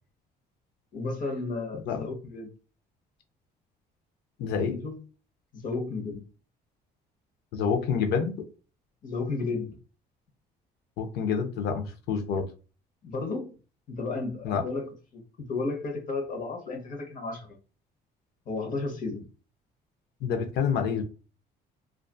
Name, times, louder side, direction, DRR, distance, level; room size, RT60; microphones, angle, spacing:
voice 1, 0.9-2.5 4.7-5.0 5.5-6.2 9.0-9.8 13.0-13.5 13.9-17.5 18.5-19.3, left 3 dB, 50° left, 3 dB, 0.9 m, -33 dB
voice 2, 4.4-4.8 7.5-8.3 11.0-12.5 14.4-14.6 20.2-21.0, left 6 dB, 75° left, 6 dB, 0.5 m, -27 dB
2.4 x 2.3 x 2.2 m, 0.34 s
cardioid pair, 110°, 17 cm